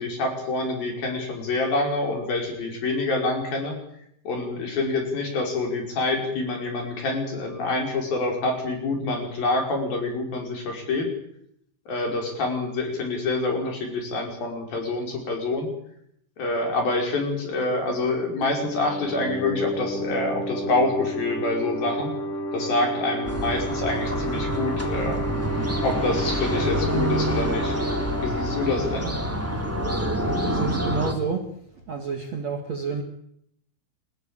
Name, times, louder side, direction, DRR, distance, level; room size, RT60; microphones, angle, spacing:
voice 1, 0.0-3.7 4.2-11.1 11.9-15.7 16.4-22.1 22.5-25.2 25.8-27.8 28.2-29.1, left 2 dB, 50° left, 2 dB, 6.8 m, -26 dB
sound 1, 18.4-29.8, equal, 20° left, 2.4 m, -32 dB
sound 2, 23.2-31.1, equal, 5° right, 2.3 m, -27 dB
voice 2, 30.3-31.6 31.9-33.0, right 4 dB, 45° right, 3 dB, 2.5 m, -30 dB
30.0 x 14.5 x 8.9 m, 0.72 s
omnidirectional pair, 5.5 m